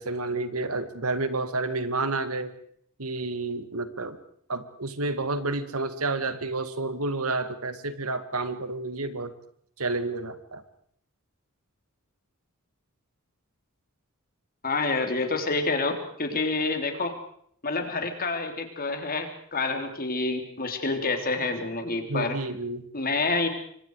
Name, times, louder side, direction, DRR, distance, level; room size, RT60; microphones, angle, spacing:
voice 1, 0.0-2.5 3.0-4.2 4.5-9.3 9.8-10.6 22.1-22.8, right 3 dB, 80° right, 11 dB, 2.1 m, -30 dB
voice 2, 14.6-17.2 17.6-22.4 22.9-23.5, left 3 dB, 40° left, 6 dB, 3.5 m, -28 dB
26.5 x 25.0 x 4.9 m, 0.64 s
head